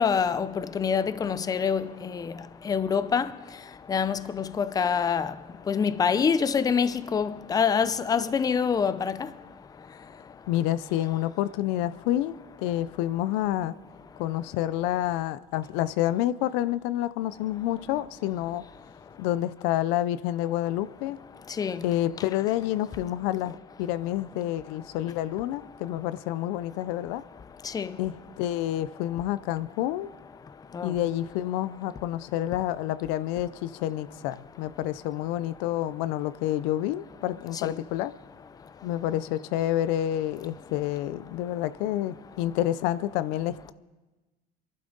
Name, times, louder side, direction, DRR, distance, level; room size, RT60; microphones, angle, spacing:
voice 1, 0.0-2.3 2.6-3.3 3.9-5.3 5.7-9.3 21.6-21.8 27.7-28.0 30.7-30.9, left 6 dB, 20° left, 0.5 m, -26 dB
voice 2, 10.5-13.7 14.2-18.6 19.2-21.2 21.8-27.2 28.0-30.1 30.8-38.1 38.8-43.7, left 13 dB, 90° left, 0.5 m, -28 dB
25.5 x 11.5 x 3.9 m
cardioid pair, 130°, 18 cm